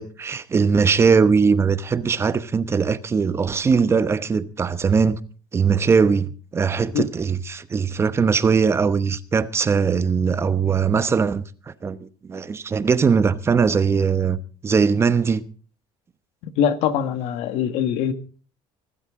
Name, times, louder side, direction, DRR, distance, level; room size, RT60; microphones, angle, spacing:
voice 1, 0.0-5.2 5.5-15.4, right 5 dB, 25° right, 0.9 m, -20 dB
voice 2, 16.4-18.1, left 8 dB, 80° left, 1.7 m, -23 dB
24.5 x 12.5 x 3.7 m
cardioid pair, 140°, 11 cm